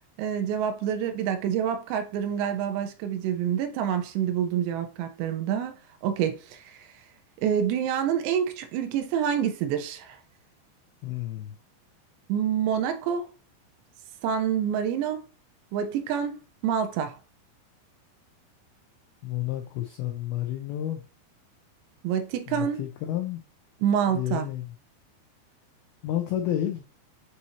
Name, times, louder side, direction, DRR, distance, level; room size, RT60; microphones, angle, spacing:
voice 1, 0.2-6.9 7.4-10.2 12.3-13.3 14.2-15.2 15.7-17.2 22.0-22.8 23.8-24.5, right 8 dB, 75° right, 2.9 m, -27 dB
voice 2, 11.0-11.6 19.2-21.0 22.5-23.4 24.1-24.6 26.0-26.8, left 12 dB, 85° left, 2.2 m, -30 dB
7.8 x 4.2 x 2.8 m
omnidirectional pair, 5.4 m